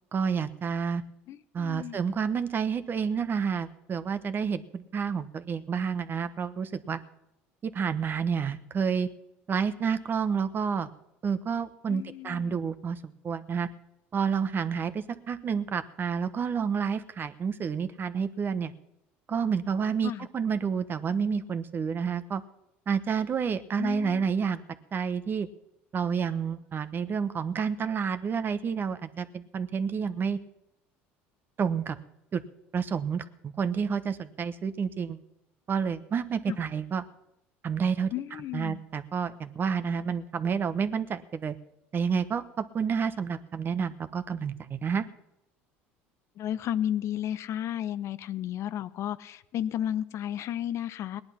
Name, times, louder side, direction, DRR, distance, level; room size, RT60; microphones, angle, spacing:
voice 1, 0.1-1.0 1.5-7.0 7.6-9.1 9.5-10.9 11.2-13.7 14.1-18.7 19.3-22.4 22.9-24.6 24.9-25.5 25.9-30.4 31.6-32.0 32.3-32.4 32.7-35.2 35.7-37.0 37.6-38.1 38.5-41.6 41.9-45.0, right 6 dB, 35° right, 12 dB, 1.1 m, -29 dB
voice 2, 1.3-2.0 11.9-12.6 20.0-20.3 23.8-24.3 36.5-36.6 38.1-38.8 46.4-51.2, left 11 dB, 55° left, 14 dB, 0.7 m, -33 dB
18.5 x 10.5 x 5.8 m, 0.86 s
supercardioid pair, 85°, 6 cm